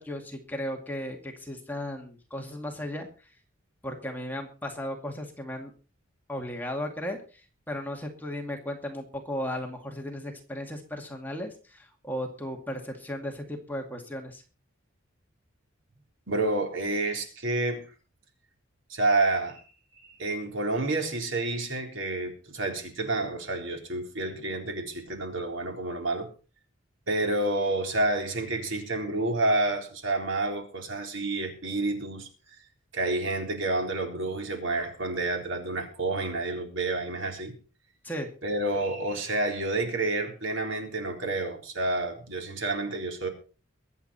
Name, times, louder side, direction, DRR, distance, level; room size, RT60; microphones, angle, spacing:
voice 1, 0.0-3.3 3.8-5.7 6.3-14.4 38.0-38.3, left 1 dB, 10° left, 2.3 m, -36 dB
voice 2, 16.3-17.8 18.9-19.6 20.1-26.3 27.1-32.3 32.9-37.5 38.4-43.3, right 2 dB, 70° right, 3.9 m, -29 dB
23.0 x 8.7 x 4.3 m
head